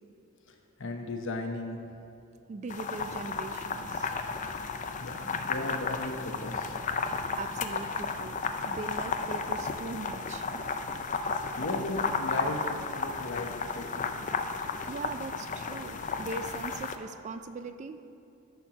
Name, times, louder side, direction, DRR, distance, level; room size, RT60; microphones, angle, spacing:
voice 1, 0.8-1.8 5.0-6.7 11.6-12.6 13.0-13.5 13.8-14.2, left 2 dB, 60° left, 4 dB, 0.9 m, -36 dB
voice 2, 2.5-4.2 7.4-10.6 14.9-18.0, right 3 dB, 30° right, 10 dB, 0.3 m, -40 dB
sound 1, 2.7-17.0, left 4 dB, 35° left, 0.4 m, -33 dB
13.0 x 4.5 x 5.9 m, 2.7 s
head